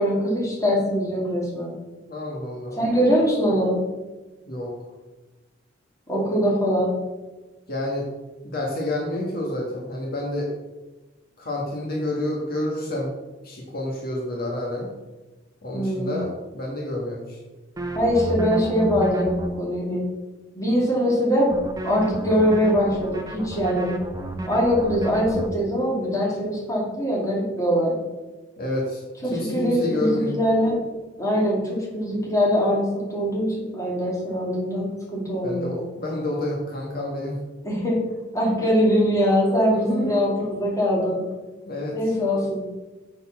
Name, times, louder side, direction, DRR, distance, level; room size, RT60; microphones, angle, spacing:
voice 1, 0.0-1.7 2.8-3.8 6.1-6.9 15.7-16.1 17.9-20.0 20.5-21.5 21.8-23.9 24.5-28.0 29.2-30.8 31.2-35.8 37.6-38.0 38.3-41.2 41.9-42.6, equal, 15° left, -4 dB, 2.6 m, -22 dB
voice 2, 2.1-2.8 4.5-4.7 7.7-8.1 8.4-10.5 11.4-13.1 13.4-14.9 15.6-17.4 28.6-30.4 35.4-37.4 39.7-40.3 41.7-42.0, left 1 dB, 50° left, -2 dB, 1.6 m, -29 dB
sound 1, 17.8-19.5 21.5-25.5, right 1 dB, 20° right, 0.8 m, -31 dB
6.8 x 6.5 x 6.1 m, 1.1 s
head